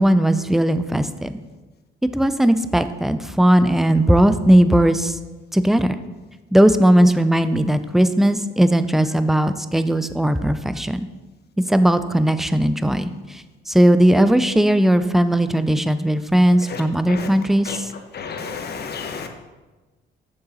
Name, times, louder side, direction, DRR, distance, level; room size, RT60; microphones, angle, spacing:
voice 1, 0.0-1.3 2.1-5.2 5.5-6.0 6.5-11.0 11.7-17.9, right 1 dB, ahead, 11 dB, 0.4 m, -17 dB
voice 2, 18.1-19.3, left 6 dB, 55° left, 5 dB, 1.1 m, -31 dB
6.8 x 6.7 x 4.1 m, 1.2 s
cardioid pair, 90°, 20 cm